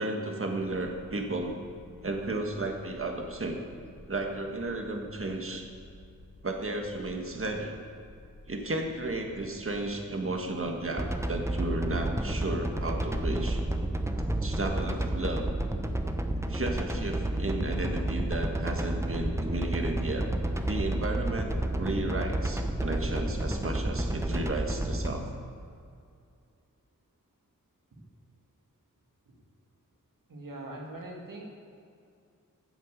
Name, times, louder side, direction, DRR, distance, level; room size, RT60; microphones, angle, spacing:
voice 1, 0.0-1.5 2.0-3.6 4.1-5.6 6.4-7.8 8.5-13.6 14.4-15.5 16.5-20.3 20.7-21.5 21.8-25.2, right 2 dB, 40° right, 2 dB, 1.6 m, -33 dB
sound 1, 0.5-16.2, left 2 dB, 70° left, 1.5 m, -52 dB
sound 2, 11.0-25.1, right 1 dB, 10° right, 0.8 m, -30 dB
voice 2, 30.3-31.4, right 1 dB, 75° right, -1 dB, 2.1 m, -42 dB
9.4 x 7.6 x 6.5 m, 2.4 s
cardioid pair, 55°, 33 cm